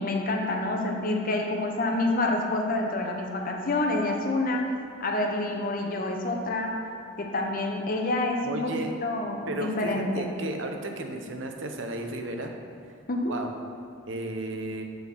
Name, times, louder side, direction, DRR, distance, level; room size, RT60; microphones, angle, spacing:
voice 1, 0.0-4.7 5.0-6.8 7.2-8.7 9.0-10.2 13.1-13.3, left 2 dB, 45° left, 1 dB, 0.9 m, -28 dB
voice 2, 8.4-8.9 9.5-12.5 13.3-13.5 14.1-14.8, right 2 dB, 60° right, 4 dB, 0.9 m, -33 dB
6.6 x 6.4 x 6.2 m, 2.5 s
head